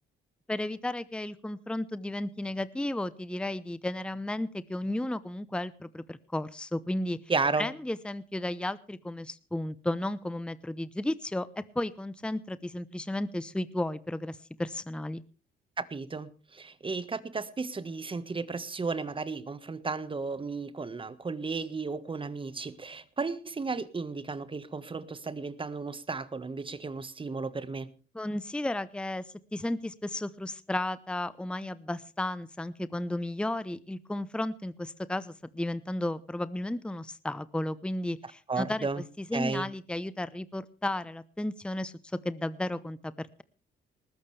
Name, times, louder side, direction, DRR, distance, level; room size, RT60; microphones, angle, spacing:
voice 1, 0.5-7.2 7.6-15.2 28.1-29.3 29.5-38.9 39.2-41.9 42.2-43.4, left 1 dB, 5° left, 15 dB, 0.8 m, -33 dB
voice 2, 7.3-7.7 15.8-27.9 38.5-39.0 39.3-39.7, right 4 dB, 25° right, 14 dB, 1.5 m, -34 dB
19.5 x 14.5 x 3.3 m, 0.36 s
cardioid pair, 90°, 20 cm